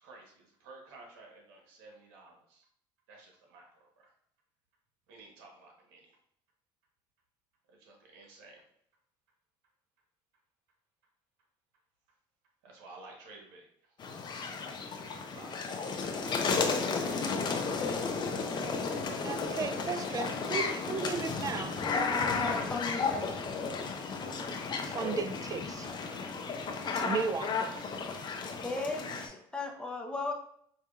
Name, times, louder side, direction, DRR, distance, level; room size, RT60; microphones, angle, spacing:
voice 1, 0.0-2.6 3.1-3.7 4.0-4.1 5.1-6.1 7.8-8.6 12.6-13.7 15.3-15.8 16.2-16.4, right 3 dB, 85° right, 1.1 m, -53 dB
sound 1, 14.0-29.3, left 4 dB, 40° left, 0.6 m, -33 dB
voice 2, 19.2-21.7 24.8-26.2 26.7-28.4, right 5 dB, 30° right, 0.3 m, -36 dB
voice 3, 22.4-23.4 28.3-30.3, left 3 dB, 10° left, 0.8 m, -37 dB
4.7 x 2.7 x 2.4 m
supercardioid pair, 85°, 12 cm